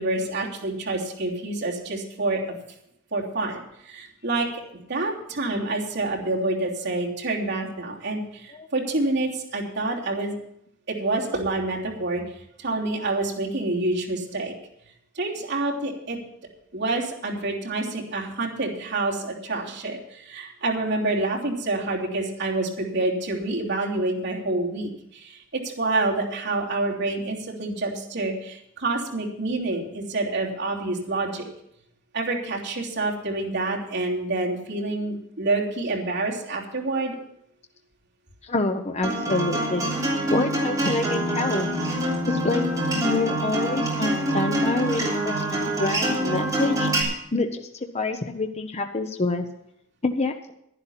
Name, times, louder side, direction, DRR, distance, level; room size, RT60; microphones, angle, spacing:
voice 1, 0.0-2.4 3.1-10.3 10.9-14.5 15.1-16.2 16.7-31.4 32.1-37.2, right 2 dB, 60° right, -4 dB, 3.2 m, -27 dB
voice 2, 38.4-39.9 40.3-41.7 42.3-42.6 42.9-49.5 50.0-50.5, left 3 dB, 35° left, 6 dB, 0.8 m, -27 dB
Acoustic guitar, 39.0-47.0, right 1 dB, 20° right, 3.4 m, -25 dB
11.5 x 11.0 x 5.7 m, 0.76 s
head